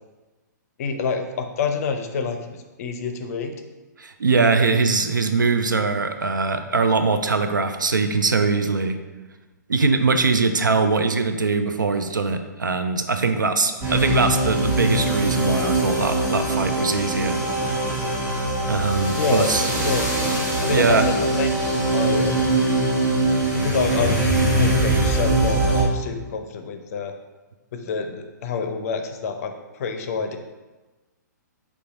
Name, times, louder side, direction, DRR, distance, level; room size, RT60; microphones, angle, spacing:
voice 1, 0.8-3.5 19.1-19.5 19.8-20.1 20.6-22.4 23.5-27.1 27.7-30.4, left 5 dB, 50° left, 6 dB, 0.6 m, -27 dB
voice 2, 4.0-9.0 9.7-17.4 18.7-19.7 20.7-21.1, right 4 dB, 85° right, 7 dB, 0.5 m, -21 dB
sound 1, 13.8-25.8, right 2 dB, 20° right, 1.4 m, -22 dB
5.4 x 2.3 x 4.0 m, 1.2 s
hypercardioid pair, 125°, 10 cm